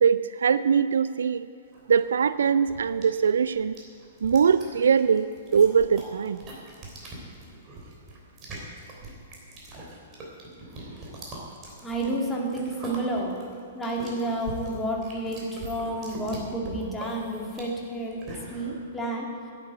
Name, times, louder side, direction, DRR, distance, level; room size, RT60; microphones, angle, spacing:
voice 1, 0.0-1.5 1.9-3.8 4.2-5.3 5.5-6.4, right 6 dB, 65° right, 15 dB, 0.3 m, -22 dB
sound 1, 1.7-18.7, right 2 dB, 30° right, 3.3 m, -42 dB
voice 2, 11.8-13.3 13.7-18.2 18.5-19.3, right 1 dB, 10° left, -2 dB, 2.3 m, -30 dB
11.0 x 8.9 x 8.0 m, 2.3 s
figure-of-eight pair, 110°, 0 cm